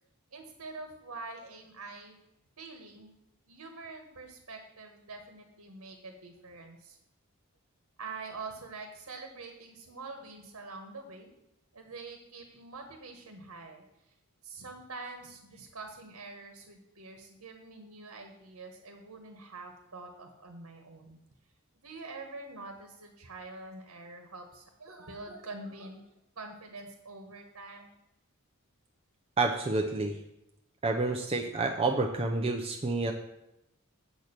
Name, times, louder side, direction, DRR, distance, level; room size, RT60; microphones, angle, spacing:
voice 1, 0.3-2.2 2.6-3.1 3.5-7.0 8.0-11.3 11.7-13.8 14.4-21.2 21.8-26.1 26.4-28.0, right 3 dB, 85° right, 4 dB, 1.2 m, -45 dB
voice 2, 29.4-30.2 30.8-33.1, right 3 dB, 25° right, 3 dB, 0.5 m, -29 dB
7.8 x 4.4 x 6.6 m, 0.86 s
head